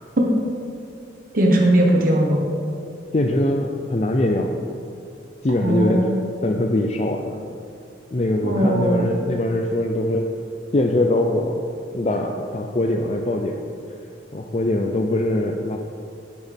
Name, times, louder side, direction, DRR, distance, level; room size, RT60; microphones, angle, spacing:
voice 1, 1.3-2.4 5.6-6.2 8.4-9.1, right 1 dB, 50° right, -1 dB, 1.2 m, -18 dB
voice 2, 3.1-4.5 5.4-6.1 6.4-7.4 8.1-10.3 10.7-11.6 11.9-13.6 14.3-15.8, left 1 dB, 35° left, 2 dB, 0.5 m, -22 dB
17.0 x 6.2 x 3.5 m, 2.4 s
head